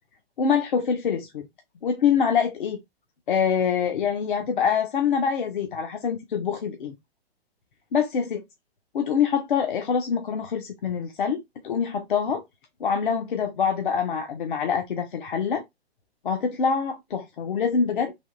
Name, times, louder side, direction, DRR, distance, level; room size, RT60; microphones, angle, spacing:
voice 1, 0.4-1.4 1.8-2.8 3.3-6.9 7.9-8.4 8.9-12.4 12.8-15.6 16.2-18.1, left 7 dB, 55° left, 0.7 m, -25 dB
3.4 x 2.5 x 2.4 m
figure-of-eight pair, 115°, 32 cm